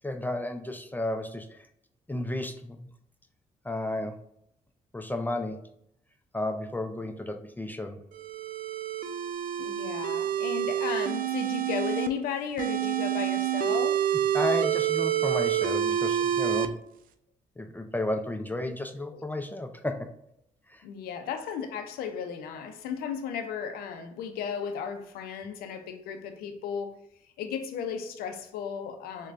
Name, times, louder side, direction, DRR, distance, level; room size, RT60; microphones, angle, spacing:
voice 1, 0.0-1.6 2.1-2.9 3.6-4.2 4.9-5.6 6.3-8.0 14.3-16.7 17.6-20.1 20.7-20.8, left 1 dB, 10° left, 0.4 m, -33 dB
sound 1, 8.1-12.1 12.6-16.7, right 10 dB, 70° right, 0.4 m, -28 dB
voice 2, 9.6-14.2 19.1-19.3 20.8-27.0 27.4-29.3, left 7 dB, 85° left, 0.5 m, -35 dB
6.2 x 2.2 x 2.5 m
supercardioid pair, 60°, 15 cm